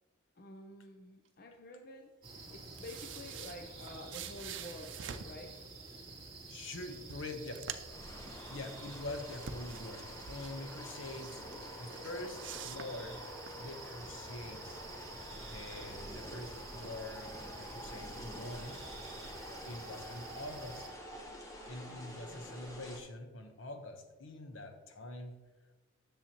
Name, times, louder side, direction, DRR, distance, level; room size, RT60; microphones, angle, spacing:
voice 1, 0.4-2.2 2.5-5.6 21.9-22.7, left 1 dB, 50° left, 4 dB, 0.6 m, -50 dB
King's Hut at Night, 2.2-20.9, right 3 dB, 30° right, 2.4 m, -50 dB
sound 1, 2.5-5.4 6.5-6.6 6.9-8.1 8.4-10.5 11.0-11.6 11.9-13.5, right 8 dB, 65° right, 0.5 m, -46 dB
voice 2, 6.5-7.5 8.3-11.4 11.8-13.2 13.6-14.8 15.5-18.8 19.6-20.8 21.7-25.4, left 2 dB, 80° left, 5 dB, 1.0 m, -45 dB
sound 2, 7.8-23.0, equal, 15° left, 1.0 m, -48 dB
10.0 x 7.0 x 3.0 m, 1.2 s
head